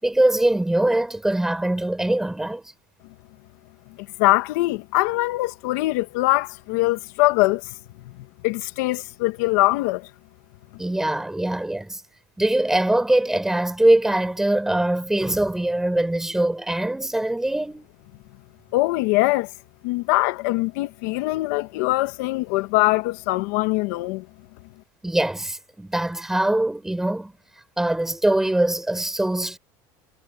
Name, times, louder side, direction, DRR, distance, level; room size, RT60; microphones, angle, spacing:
voice 1, 0.0-2.6 10.8-12.0 12.4-17.8 25.0-27.3 27.8-29.6, right 1 dB, 5° right, 5.9 m, -22 dB
voice 2, 4.2-7.6 8.4-10.1 18.7-19.5 19.8-24.2, left 20 dB, 75° left, 1.3 m, -22 dB
cardioid pair, 160°, 9 cm